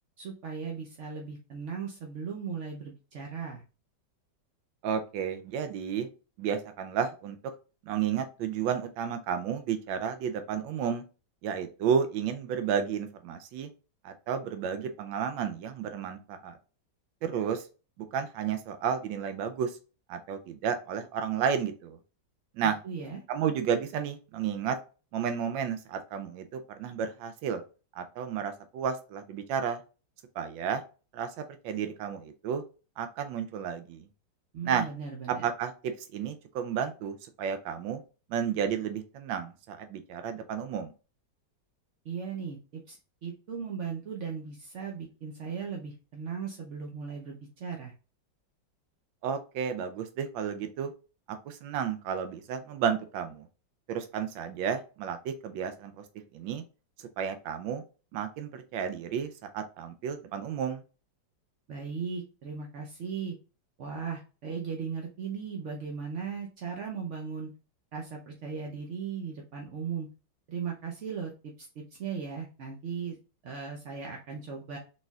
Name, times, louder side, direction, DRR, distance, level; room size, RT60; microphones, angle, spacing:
voice 1, 0.2-3.6 22.6-23.2 34.5-35.5 42.0-47.9 61.7-63.3 63.8-67.5 67.9-70.1 70.5-71.3 71.6-73.2 73.4-74.8, right 6 dB, 60° right, 0 dB, 0.8 m, -37 dB
voice 2, 4.8-6.1 6.4-7.4 7.9-11.0 11.4-13.7 14.0-16.6 17.2-17.7 18.1-19.8 20.1-22.0 22.6-22.8 23.3-24.8 25.1-27.6 27.9-29.8 30.4-30.8 31.1-32.6 33.0-34.1 34.7-34.9 35.4-38.0 38.3-40.9 49.2-50.9 51.3-53.5 53.9-56.0 56.3-56.6 57.2-57.8 58.1-60.8, right 7 dB, 90° right, 8 dB, 1.3 m, -32 dB
4.1 x 3.8 x 2.3 m, 0.33 s
omnidirectional pair, 2.0 m